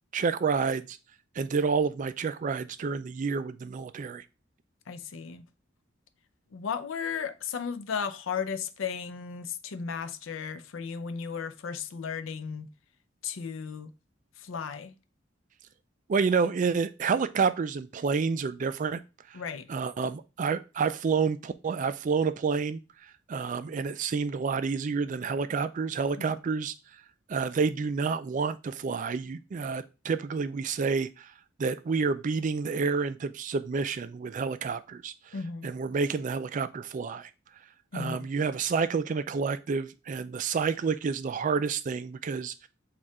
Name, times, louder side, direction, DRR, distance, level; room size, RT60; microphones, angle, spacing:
voice 1, 0.1-1.0 1.4-4.2 16.1-19.0 19.3-19.4 19.7-22.8 23.3-26.7 27.3-31.3 31.6-35.1 35.6-37.3 37.9-42.7, right 5 dB, 40° right, 0.3 m, -29 dB
voice 2, 4.9-5.4 6.5-12.7 13.2-13.9 14.4-14.9 19.3-19.7 26.2-26.4 35.3-35.7 37.9-38.2, left 6 dB, 85° left, 0.5 m, -35 dB
4.4 x 2.4 x 4.7 m
head